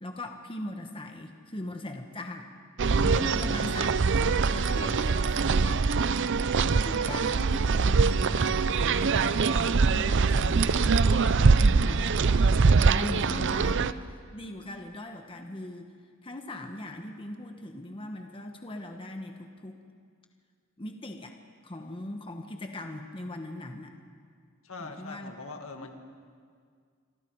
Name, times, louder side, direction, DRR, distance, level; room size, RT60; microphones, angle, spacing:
voice 1, 0.0-5.8 6.5-14.0 14.3-15.9 16.2-19.8 20.8-21.4 21.6-23.9 24.8-25.3 25.8-25.9, left 1 dB, 25° left, 4 dB, 1.3 m, -40 dB
sound 1, 2.8-13.9, right 4 dB, 60° right, 0.6 m, -23 dB
voice 2, 24.6-25.9, left 3 dB, 70° left, 5 dB, 1.9 m, -42 dB
27.5 x 25.0 x 4.8 m, 2.1 s
head